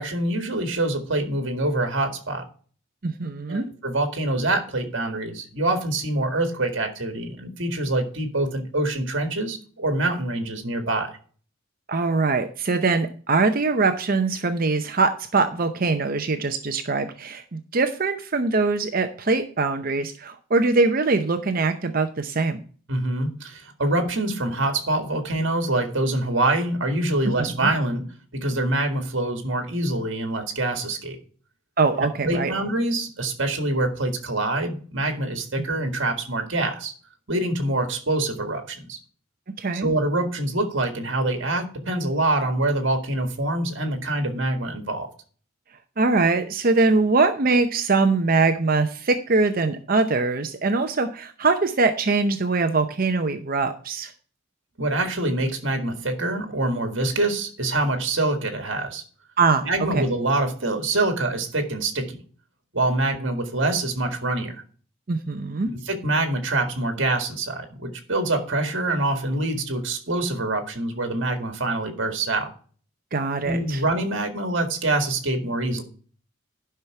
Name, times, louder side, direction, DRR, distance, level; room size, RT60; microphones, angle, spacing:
voice 1, 0.0-2.5 3.5-11.2 22.9-28.1 28.3-31.2 32.0-36.9 37.3-39.0 39.7-45.1 54.8-59.0 59.6-62.2 62.7-64.6 65.7-72.5 73.4-75.8, right 2 dB, 60° right, 5 dB, 1.8 m, -25 dB
voice 2, 3.0-3.6 11.9-22.6 27.4-27.7 31.8-32.5 39.6-39.9 46.0-54.1 59.4-59.6 59.9-60.0 65.1-65.7 73.1-73.8, right 3 dB, 45° right, 8 dB, 0.7 m, -22 dB
11.0 x 5.8 x 4.7 m, 0.43 s
head